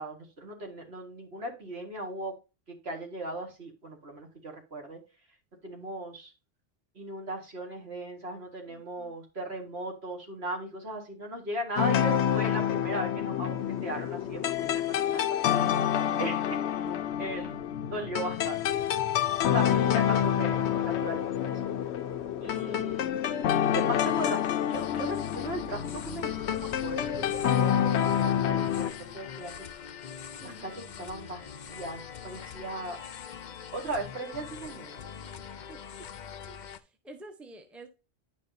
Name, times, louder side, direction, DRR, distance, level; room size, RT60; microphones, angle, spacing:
voice 1, 0.0-2.3 2.7-5.0 5.6-6.3 7.0-16.9 17.2-17.6 17.9-18.9 19.4-19.7 19.9-21.5 22.4-23.1 23.6-29.5 30.4-33.0 33.7-35.0, right 1 dB, 70° right, 2.2 m, -38 dB
voice 2, 8.7-9.2 13.5-13.6 22.5-22.9 30.4-30.8 35.7-36.1 36.5-37.9, right 2 dB, ahead, 0.9 m, -50 dB
sound 1, 11.8-28.9, left 10 dB, 85° left, 0.9 m, -28 dB
sound 2, 24.7-36.8, left 7 dB, 50° left, 0.6 m, -43 dB
9.8 x 5.2 x 2.7 m
omnidirectional pair, 1.1 m